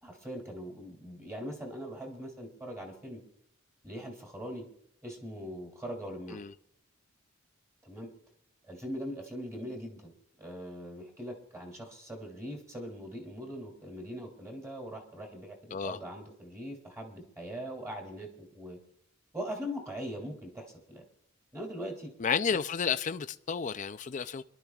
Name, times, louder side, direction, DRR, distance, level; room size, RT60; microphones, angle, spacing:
voice 1, 0.0-3.2 3.8-4.7 5.0-6.4 7.8-8.1 8.6-10.1 10.4-18.8 19.3-21.0 21.5-22.1, equal, 15° right, 2.7 m, -41 dB
voice 2, 22.2-24.4, left 6 dB, 35° left, 0.4 m, -31 dB
26.5 x 12.0 x 2.4 m
head